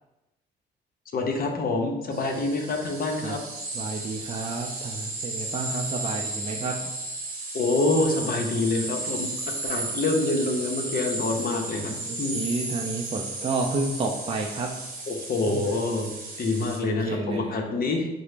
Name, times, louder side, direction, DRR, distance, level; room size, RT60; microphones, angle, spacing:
voice 1, 1.1-3.4 7.5-9.3 9.6-11.9 12.2-12.4 15.1-16.1 16.4-18.1, left 2 dB, 50° left, 2 dB, 0.6 m, -26 dB
sound 1, 2.1-16.8, right 2 dB, 50° right, 0.9 m, -34 dB
voice 2, 3.7-6.9 11.3-11.4 12.0-14.7 15.5-15.7 16.8-17.6, right 3 dB, 30° right, 0 dB, 0.4 m, -31 dB
3.7 x 2.0 x 3.2 m, 0.95 s
cardioid pair, 90°, 20 cm